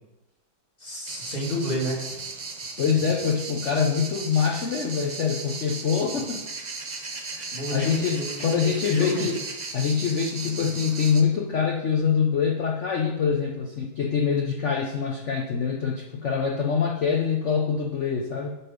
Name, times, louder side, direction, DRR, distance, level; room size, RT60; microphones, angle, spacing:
voice 1, 0.8-2.0 7.5-9.3, equal, 25° left, -3 dB, 2.3 m, -30 dB
sound 1, 1.1-11.2, right 3 dB, 80° right, 0.3 m, -36 dB
voice 2, 2.8-6.4 7.3-9.4 9.7-18.5, left 6 dB, 70° left, 1 dB, 0.6 m, -25 dB
11.5 x 4.5 x 5.2 m, 1.0 s
omnidirectional pair, 2.2 m